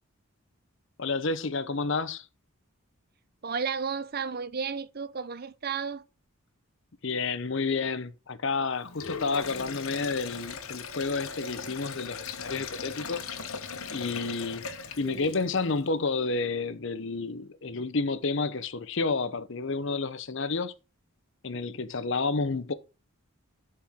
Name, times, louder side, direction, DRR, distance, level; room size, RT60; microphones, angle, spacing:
voice 1, 1.0-2.2 7.0-13.2 13.9-14.6 15.0-20.7 21.4-22.7, left 4 dB, 55° left, 0.7 m, -30 dB
voice 2, 3.4-6.0 15.0-15.5, right 6 dB, 45° right, 0.5 m, -33 dB
Sink (filling or washing), 8.8-15.7, left 5 dB, 80° left, 1.2 m, -39 dB
11.5 x 4.5 x 3.6 m
head